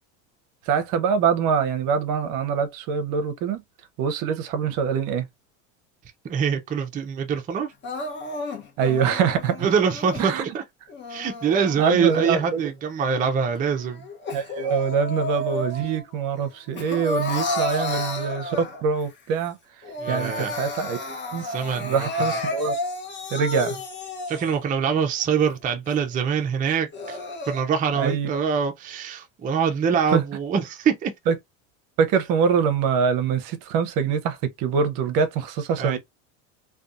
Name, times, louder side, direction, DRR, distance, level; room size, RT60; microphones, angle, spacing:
voice 1, 0.6-3.6 4.0-5.3 8.8-9.7 10.2-10.5 11.8-12.6 14.3-19.6 20.1-21.4 21.8-22.7 23.3-23.8 28.0-28.3 30.1-30.2 31.3-31.4 32.0-36.0, right 6 dB, 55° right, 0.7 m, -24 dB
voice 2, 6.3-7.7 9.6-10.6 11.1-14.0 17.7-17.8 20.0-20.6 21.4-22.3 24.3-27.2 27.4-31.1 35.8-36.0, right 6 dB, 20° right, 0.5 m, -24 dB
Crying sobbing, 7.8-10.3 10.9-12.7 13.1-16.0 16.4-19.0 19.4-19.5 19.8-24.7 25.2-25.3 25.9-26.0 26.7-27.6, left 2 dB, 30° left, 0.9 m, -32 dB
2.5 x 2.3 x 2.5 m
supercardioid pair, 105°, 38 cm